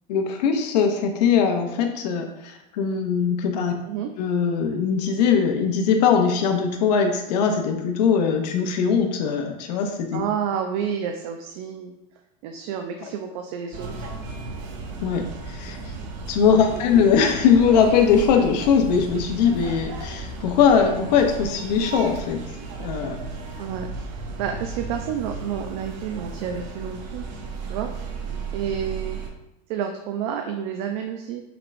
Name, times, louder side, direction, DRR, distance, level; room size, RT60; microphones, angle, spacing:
voice 1, 0.1-3.7 4.2-10.2 15.0-15.8 16.3-22.4 22.8-23.2, left 6 dB, 80° left, 4 dB, 0.7 m, -21 dB
voice 2, 10.1-12.0 12.4-14.2 16.0-16.1 16.5-17.0 23.6-27.3 27.7-27.9 28.5-29.2 29.7-31.4, right 8 dB, 60° right, 4 dB, 0.5 m, -30 dB
sound 1, 13.7-29.3, right 4 dB, 85° right, 0.8 m, -34 dB
6.0 x 3.3 x 2.5 m, 0.90 s
supercardioid pair, 140°, 21 cm